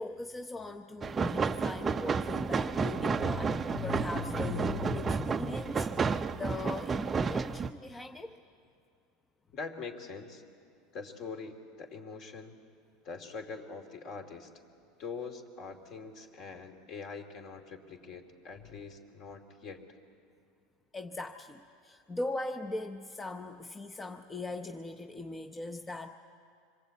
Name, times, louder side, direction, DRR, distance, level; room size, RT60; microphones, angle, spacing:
voice 1, 0.0-8.4 18.6-18.8 20.9-26.1, left 3 dB, 15° left, 5 dB, 0.7 m, -39 dB
sound 1, 1.0-7.7, right 5 dB, 20° right, 0.6 m, -31 dB
voice 2, 9.5-10.4 10.9-12.6 13.0-14.5 15.0-19.8, left 4 dB, 45° left, 4 dB, 2.6 m, -43 dB
26.0 x 22.0 x 8.4 m, 2.3 s
supercardioid pair, 135°, 0 cm